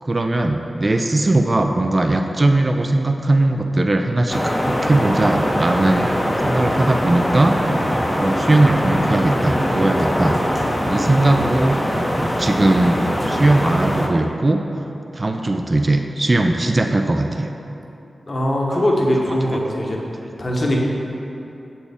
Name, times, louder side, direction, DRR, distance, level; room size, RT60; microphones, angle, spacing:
voice 1, 0.0-6.1 6.4-7.5 8.2-10.4 10.9-11.8 12.2-13.0 13.3-14.6 15.1-17.5 18.7-19.0, right 2 dB, 35° right, 4 dB, 0.3 m, -19 dB
sound 1, 4.3-14.1, equal, 15° left, 0.6 m, -21 dB
voice 2, 18.3-20.0 20.4-20.8, equal, 45° left, -2 dB, 0.9 m, -20 dB
7.0 x 4.3 x 3.4 m, 2.9 s
cardioid pair, 65°, 0 cm